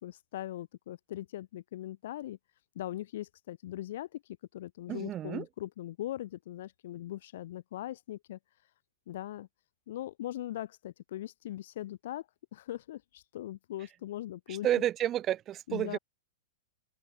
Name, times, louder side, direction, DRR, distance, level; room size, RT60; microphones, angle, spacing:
voice 1, 0.0-2.4 2.7-4.2 4.5-8.4 9.1-9.5 9.9-12.3 12.5-14.7 15.7-16.0, left 13 dB, 55° left, 2.7 m, -40 dB
voice 2, 4.9-5.5 14.6-16.0, right 12 dB, 20° right, 0.6 m, -30 dB
open air
supercardioid pair, 170°, 0 cm